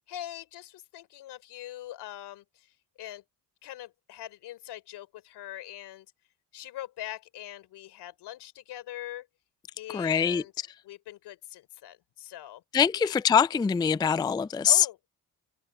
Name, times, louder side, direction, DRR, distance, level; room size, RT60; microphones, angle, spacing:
voice 1, 0.1-2.7 3.0-3.2 3.6-6.1 6.5-9.3 9.8-12.6 12.9-13.2 14.7-15.1, left 13 dB, 75° left, 3.5 m, -42 dB
voice 2, 9.9-10.4 12.7-14.8, left 8 dB, 10° left, 0.3 m, -23 dB
open air
supercardioid pair, 75°, 40 cm